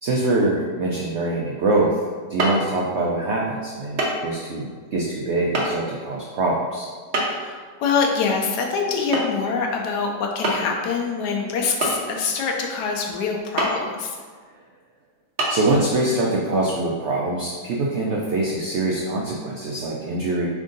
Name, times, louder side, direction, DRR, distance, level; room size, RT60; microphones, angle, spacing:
voice 1, 0.0-2.0 2.3-6.9 15.5-20.5, right 2 dB, 80° right, -3 dB, 0.6 m, -24 dB
sound 1, 2.4-2.6 4.0-4.2 4.5-4.6 5.5-5.7 7.1-7.5 9.1-9.4 9.7-9.8 10.4-10.8 11.8-12.3 13.6-13.8 14.4-14.5 15.4-15.5, right 2 dB, 50° right, 0.8 m, -23 dB
voice 2, 7.2-14.2, left 5 dB, 80° left, 1 dB, 1.2 m, -25 dB
3.7 x 3.6 x 3.8 m, 1.5 s
omnidirectional pair, 1.8 m